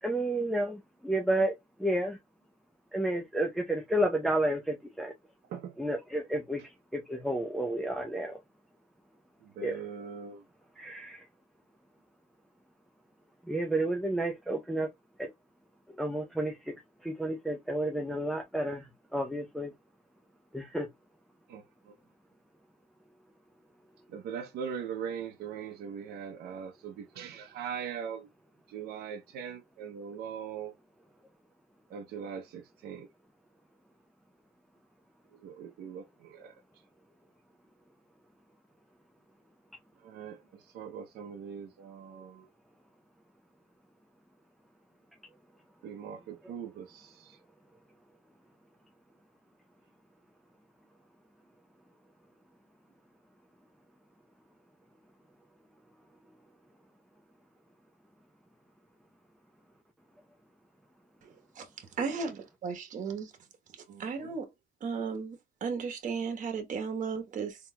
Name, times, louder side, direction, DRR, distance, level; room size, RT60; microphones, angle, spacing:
voice 1, 0.0-1.5 1.8-2.2 2.9-5.1 5.8-8.4 9.6-9.8 10.8-11.2 13.5-14.9 15.2-15.3 16.0-16.7 17.0-18.9 19.1-19.7 20.5-20.9, right 1 dB, ahead, 0.6 m, -31 dB
voice 2, 9.6-10.4 21.5-21.6 24.1-28.3 28.7-30.7 31.9-33.1 35.4-36.5 40.0-40.4 40.7-42.5 45.8-47.4 63.9-64.3, right 7 dB, 70° right, 0.7 m, -41 dB
voice 3, 62.0-63.3 64.0-64.4 64.8-67.6, right 5 dB, 50° right, 1.1 m, -35 dB
3.9 x 2.9 x 2.2 m
cardioid pair, 110°, 17 cm